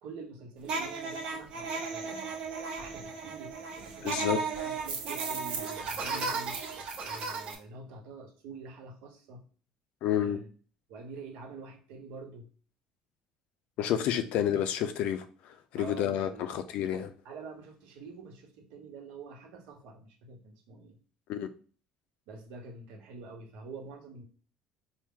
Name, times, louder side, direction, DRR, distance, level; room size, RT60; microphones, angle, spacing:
voice 1, 0.0-2.3 2.8-4.1 4.6-6.6 7.0-9.4 10.2-10.5 10.9-12.5 15.7-16.5 16.9-21.0 22.3-24.2, right 4 dB, 85° right, 2 dB, 1.0 m, -46 dB
sound 1, 0.6-7.5, right 4 dB, 50° right, 0.9 m, -35 dB
voice 2, 4.0-4.4 10.0-10.4 13.8-17.1 21.3-21.5, left 10 dB, 65° left, 10 dB, 0.5 m, -30 dB
4.5 x 2.1 x 3.6 m, 0.41 s
cardioid pair, 140°, 2 cm